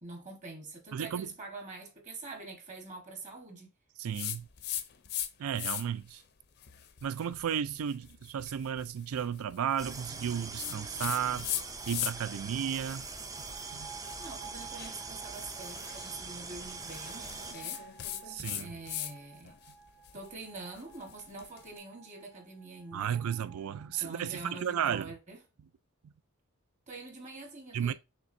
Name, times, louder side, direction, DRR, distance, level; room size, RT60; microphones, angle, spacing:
voice 1, 0.0-3.7 14.2-17.8 18.6-19.6 20.1-23.1 23.9-25.4 26.9-27.9, right 3 dB, 35° right, 1.3 m, -45 dB
voice 2, 0.9-1.3 4.0-4.5 5.4-6.2 7.0-11.5 11.9-13.1 13.7-13.9 18.3-18.7 22.9-25.1 26.0-26.1 27.7-27.9, right 8 dB, 90° right, 0.4 m, -33 dB
sound 1, 4.1-5.3 5.5-6.1 6.6-12.4 12.7-19.1 19.4-21.6, left 11 dB, 50° left, 0.5 m, -40 dB
sound 2, 9.8-17.5, right 4 dB, 15° right, 0.4 m, -43 dB
sound 3, 13.3-24.4, right 9 dB, 65° right, 0.7 m, -53 dB
5.9 x 3.3 x 2.6 m
head